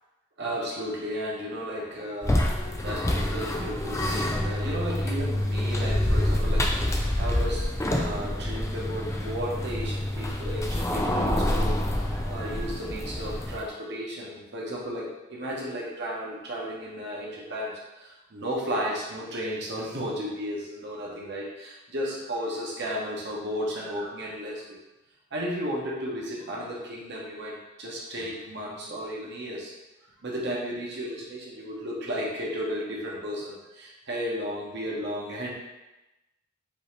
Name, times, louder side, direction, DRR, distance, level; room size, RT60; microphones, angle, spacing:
voice 1, 0.4-24.8 25.3-29.7 30.2-35.5, equal, 50° right, -4 dB, 1.0 m, -34 dB
sound 1, 2.2-13.7, left 1 dB, 15° left, 0.3 m, -27 dB
5.3 x 2.8 x 3.2 m, 1.0 s
head